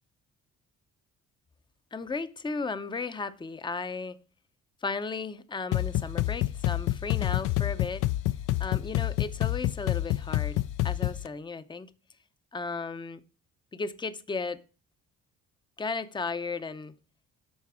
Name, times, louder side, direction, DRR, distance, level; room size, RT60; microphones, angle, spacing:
voice 1, 1.9-4.2 4.8-8.1 8.6-11.9 12.5-13.2 13.7-14.6 15.8-17.0, left 4 dB, 15° left, 0.6 m, -35 dB
sound 1, 5.7-11.3, left 15 dB, 65° left, 0.5 m, -28 dB
11.5 x 4.1 x 4.8 m
cardioid pair, 95°, 33 cm